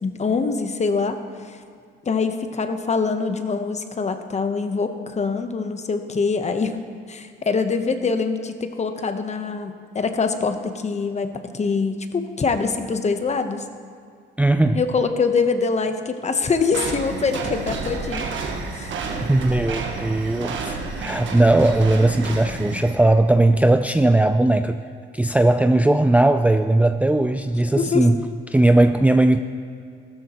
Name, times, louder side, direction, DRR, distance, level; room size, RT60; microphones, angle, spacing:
voice 1, 0.0-1.6 2.0-6.8 7.1-13.6 14.7-18.3 18.7-19.0 27.8-28.1, left 4 dB, 35° left, 8 dB, 1.0 m, -24 dB
voice 2, 14.4-14.8 19.3-24.8 25.1-28.2 28.5-29.4, right 2 dB, 5° right, 7 dB, 0.4 m, -18 dB
sound 1, 16.7-22.9, right 4 dB, 75° right, 1.5 m, -30 dB
15.5 x 13.0 x 3.0 m, 2.2 s
cardioid pair, 90°, 20 cm